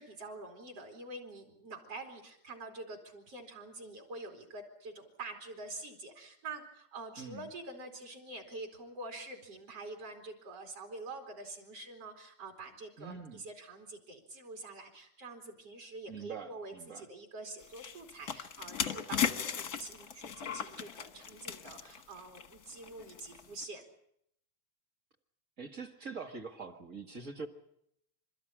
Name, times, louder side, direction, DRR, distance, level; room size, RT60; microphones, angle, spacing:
voice 1, 0.0-23.8, right 2 dB, 55° right, 2 dB, 4.0 m, -46 dB
voice 2, 7.2-7.5 13.0-13.4 16.1-17.1 25.6-27.5, right 5 dB, 35° right, 5 dB, 1.4 m, -44 dB
sound 1, 17.6-23.6, left 8 dB, 50° left, 1.1 m, -37 dB
27.5 x 13.5 x 9.9 m, 0.75 s
omnidirectional pair, 3.4 m